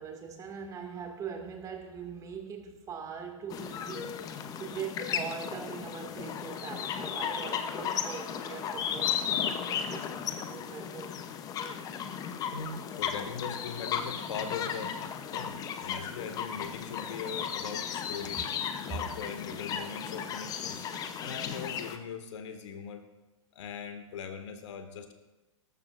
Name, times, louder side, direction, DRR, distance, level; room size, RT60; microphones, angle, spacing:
voice 1, 0.0-4.3 4.6-11.1, right 6 dB, 20° right, 3 dB, 2.3 m, -42 dB
sound 1, 3.5-22.0, left 8 dB, 20° left, 0.9 m, -35 dB
voice 2, 12.5-14.9 15.3-18.5 18.8-20.8 21.2-23.0 23.5-25.1, left 6 dB, 60° left, 6 dB, 2.1 m, -40 dB
18.5 x 13.5 x 2.6 m, 1.1 s
hypercardioid pair, 120°, 17 cm